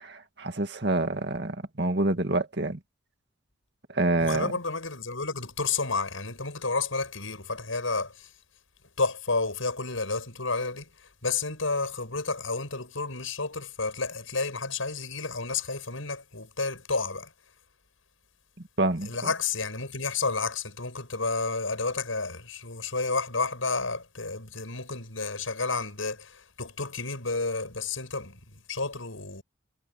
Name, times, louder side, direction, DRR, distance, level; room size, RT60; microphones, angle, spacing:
voice 1, 0.0-2.8 3.9-4.5 18.8-19.1, right 2 dB, 55° right, 2.0 m, -27 dB
voice 2, 4.2-8.3 9.0-17.3 19.0-29.4, left 4 dB, 85° left, 6.9 m, -31 dB
head